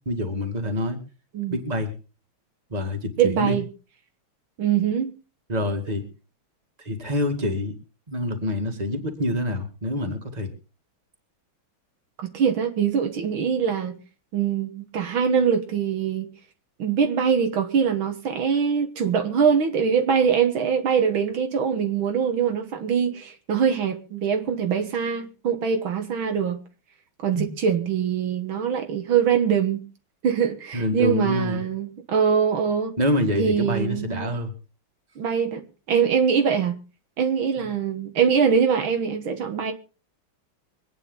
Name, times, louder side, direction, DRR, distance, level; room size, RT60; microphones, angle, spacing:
voice 1, 0.1-1.0 1.5-1.9 2.7-3.6 5.5-6.0 6.8-7.7 8.1-10.5 27.4-27.5 30.7-31.6 33.0-34.5 37.6-37.7, left 1 dB, 20° right, 2.2 m, -26 dB
voice 2, 3.2-3.7 4.6-5.1 12.2-14.0 14.3-16.3 16.8-26.6 27.2-29.9 30.2-32.9 33.4-34.4 35.2-35.6 35.9-36.8 37.2-39.7, right 7 dB, 75° right, 2.2 m, -23 dB
24.5 x 9.3 x 3.9 m
omnidirectional pair, 2.3 m